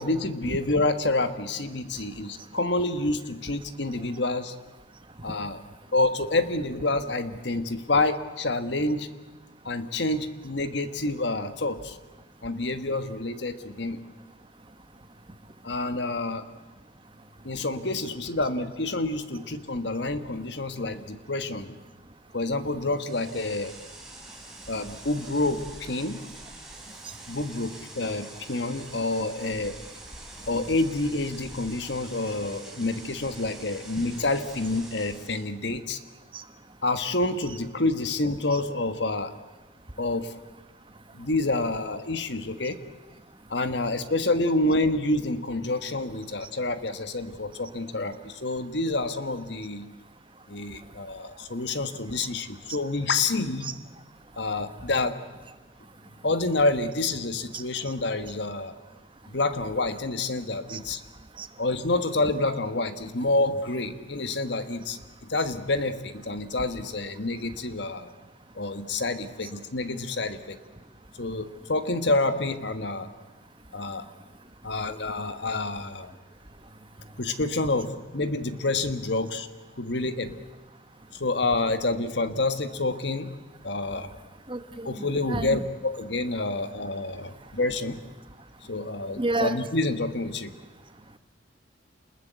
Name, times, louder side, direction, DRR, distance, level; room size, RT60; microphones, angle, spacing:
voice 1, 0.0-4.5 5.2-5.6 5.9-9.1 9.6-12.0 12.4-14.0 15.6-16.4 17.4-21.8 22.3-23.7 24.7-26.2 27.3-29.8 30.5-36.0 36.8-39.3 40.0-40.3 41.1-42.8 43.5-49.9 50.5-53.7 54.4-55.2 56.2-58.8 59.3-61.0 61.6-65.0 65.3-68.1 68.5-70.6 71.2-73.1 73.7-74.0 74.6-76.1 77.2-79.5 79.8-80.3 81.1-83.3 83.6-84.1 84.8-88.0 88.7-90.5, left 2 dB, 60° left, 10 dB, 1.5 m, -28 dB
sound 1, 23.0-35.5, right 2 dB, ahead, 3.7 m, -45 dB
voice 2, 84.5-85.6 89.2-89.6, right 2 dB, 25° right, 10 dB, 1.2 m, -31 dB
28.5 x 21.0 x 8.2 m, 1.3 s
head